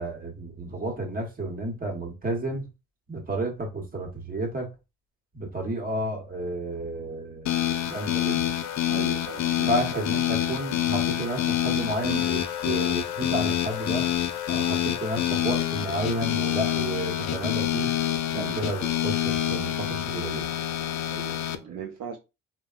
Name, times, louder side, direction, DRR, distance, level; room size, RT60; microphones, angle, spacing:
voice 1, 0.0-2.6 3.1-4.7 5.3-8.5 9.7-14.1 14.5-17.9 18.3-20.5 21.7-21.8, right 1 dB, 30° right, 1.2 m, -31 dB
sound 1, 7.5-21.6, left 11 dB, 65° left, 0.5 m, -27 dB
voice 2, 8.9-10.1 18.3-18.6 21.0-22.2, right 6 dB, 65° right, 0.6 m, -38 dB
3.3 x 2.3 x 2.4 m
cardioid pair, 90°, 30 cm